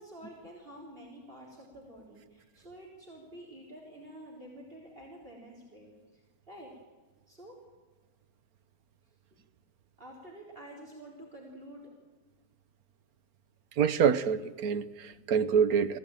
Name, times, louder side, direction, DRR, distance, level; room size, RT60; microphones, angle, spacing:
voice 1, 0.0-6.2 6.5-6.7 7.3-7.6 10.0-11.9, right 1 dB, 35° right, -1 dB, 4.2 m, -49 dB
voice 2, 13.8-16.0, right 7 dB, 75° right, 14 dB, 1.4 m, -26 dB
22.5 x 16.0 x 9.0 m, 1.3 s
omnidirectional pair, 1.6 m